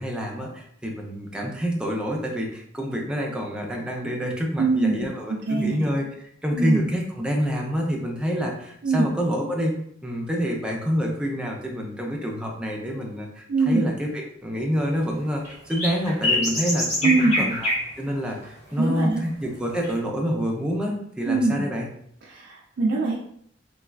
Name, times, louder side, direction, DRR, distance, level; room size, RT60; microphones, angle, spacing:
voice 1, 0.0-6.1 6.4-9.7 10.0-17.7 18.0-21.9, equal, 5° right, -1 dB, 0.5 m, -27 dB
voice 2, 4.6-5.0 5.5-5.8 6.5-6.8 8.8-9.1 13.5-13.8 17.0-17.4 18.8-19.2 21.3-21.6 22.3-23.1, right 3 dB, 60° right, -3 dB, 0.4 m, -22 dB
sound 1, 15.4-17.9 18.4-18.5 19.8-19.9, left 1 dB, 35° left, 1.0 m, -25 dB
3.1 x 2.3 x 2.3 m, 0.67 s
head